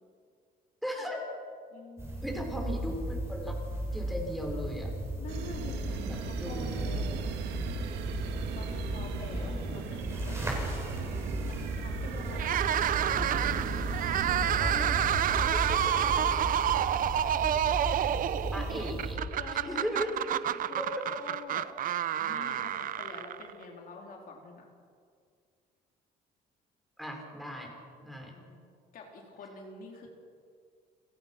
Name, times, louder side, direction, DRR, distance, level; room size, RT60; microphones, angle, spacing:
voice 1, 0.8-1.2 2.2-3.6 3.9-4.9 6.0-6.6 9.1-9.9 15.6-16.0 18.5-19.2 19.5-20.1 20.8-20.9 27.0-27.7 28.0-28.3, equal, ahead, 0 dB, 5.7 m, -37 dB
voice 2, 1.7-2.4 5.2-7.3 8.5-13.3 14.5-16.5 18.2-18.3 19.4-21.7 22.2-24.7 28.3-28.6 28.9-30.1, left 4 dB, 55° left, 1 dB, 3.7 m, -46 dB
sound 1, 2.0-19.1, right 1 dB, 15° right, 7.3 m, -35 dB
sound 2, 5.3-17.6, right 6 dB, 90° right, 2.0 m, -39 dB
sound 3, 12.3-23.6, right 10 dB, 55° right, 0.8 m, -29 dB
29.5 x 17.0 x 6.0 m, 2.2 s
cardioid pair, 110°, 17 cm